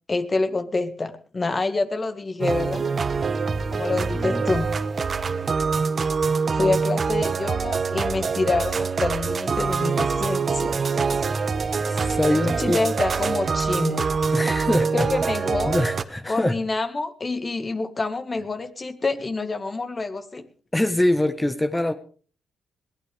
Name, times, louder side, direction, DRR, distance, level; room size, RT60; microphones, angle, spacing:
voice 1, 0.1-2.8 3.7-4.7 6.5-10.8 12.3-14.1 14.8-15.8 16.3-20.4, left 3 dB, 35° left, 9 dB, 1.9 m, -27 dB
sound 1, 2.4-16.0, right 5 dB, 45° right, 1.2 m, -24 dB
voice 2, 3.9-4.4 11.8-12.8 14.3-14.9 15.6-16.6 20.7-21.9, left 1 dB, 15° left, 8 dB, 1.4 m, -24 dB
21.5 x 16.5 x 3.6 m, 0.42 s
cardioid pair, 80°, 0 cm